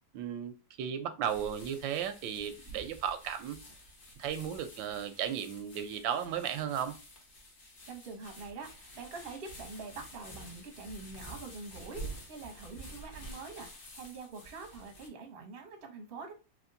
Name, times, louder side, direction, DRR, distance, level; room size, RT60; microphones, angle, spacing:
voice 1, 0.1-3.6 4.2-7.0, right 9 dB, 85° right, 1.3 m, -35 dB
sound 1, 1.2-15.1, right 1 dB, 50° left, 1.3 m, -49 dB
voice 2, 7.9-16.3, right 4 dB, 45° right, 0.8 m, -45 dB
3.5 x 3.0 x 2.5 m
omnidirectional pair, 2.0 m